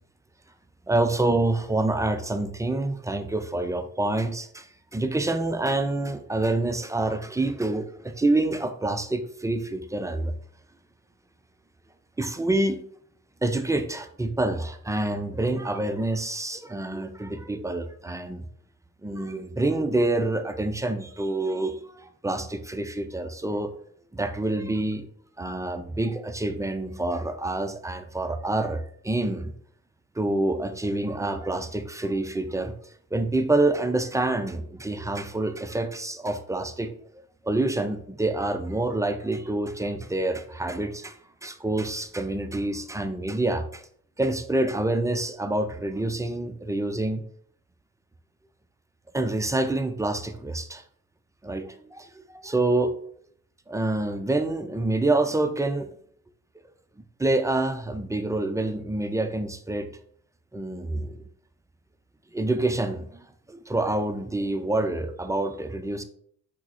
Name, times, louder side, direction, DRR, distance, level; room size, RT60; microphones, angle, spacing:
voice 1, 0.9-10.3 12.2-12.8 13.4-18.4 19.0-23.7 24.1-25.1 25.4-29.5 30.2-32.7 33.1-36.9 37.4-43.8 44.2-47.2 49.1-50.8 51.4-52.9 53.7-55.9 57.2-59.9 60.5-61.2 62.3-63.2 63.5-66.0, right 2 dB, 10° right, 8 dB, 0.4 m, -27 dB
5.8 x 2.1 x 4.2 m, 0.63 s
hypercardioid pair, 45°, 41 cm